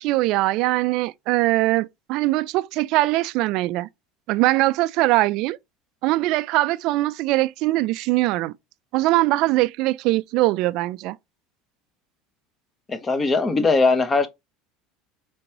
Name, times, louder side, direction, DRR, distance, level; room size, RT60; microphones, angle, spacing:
voice 1, 0.0-3.9 4.3-5.6 6.0-8.5 8.9-11.2, right 18 dB, 65° right, 0.3 m, -21 dB
voice 2, 12.9-14.3, left 3 dB, 25° left, 1.0 m, -20 dB
5.2 x 3.4 x 2.9 m
supercardioid pair, 95°, 0 cm